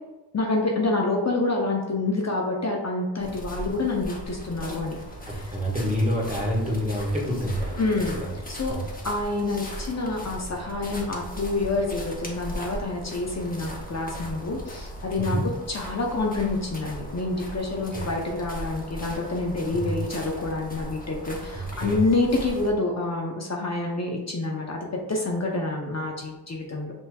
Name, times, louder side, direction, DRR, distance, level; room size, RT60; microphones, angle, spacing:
voice 1, 0.3-5.0 5.3-5.5 7.8-8.2 8.5-8.7 9.0-15.4 15.7-26.9, left 2 dB, 40° left, 0 dB, 0.8 m, -27 dB
sound 1, 3.2-22.7, equal, 20° left, 1.1 m, -38 dB
voice 2, 5.3-7.9 8.2-8.3 8.7-8.9 15.2-15.4 17.9-18.1 19.7-19.9 21.5-22.0, equal, 20° right, -3 dB, 1.4 m, -27 dB
5.6 x 3.0 x 2.3 m, 1.1 s
cardioid pair, 55°, 42 cm